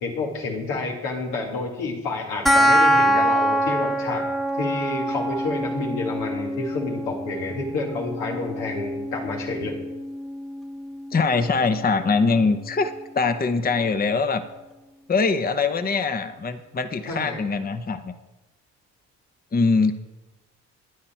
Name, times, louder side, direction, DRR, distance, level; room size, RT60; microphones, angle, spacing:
voice 1, 0.0-4.3 4.6-9.7 17.1-17.4, left 3 dB, 90° left, -1 dB, 2.3 m, -29 dB
sound 1, 2.5-13.4, equal, ahead, 0.8 m, -25 dB
voice 2, 11.1-14.4 15.1-18.1 19.5-19.9, left 4 dB, 25° left, 9 dB, 0.9 m, -22 dB
9.8 x 9.5 x 4.4 m, 1.1 s
supercardioid pair, 65°, 33 cm